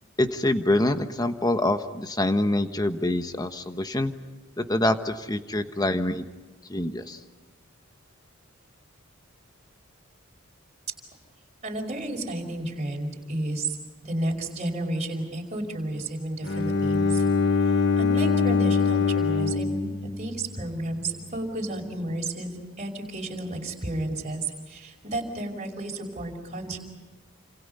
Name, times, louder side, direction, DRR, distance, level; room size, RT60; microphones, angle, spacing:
voice 1, 0.2-4.1 4.6-6.2 6.7-7.2, left 1 dB, 20° left, 8 dB, 1.3 m, -25 dB
voice 2, 11.6-13.7 14.0-17.2 18.0-26.8, right 1 dB, 35° right, 0 dB, 5.3 m, -32 dB
Bowed string instrument, 16.4-20.5, left 4 dB, 55° left, 1.4 m, -23 dB
29.5 x 27.5 x 5.6 m, 1.2 s
head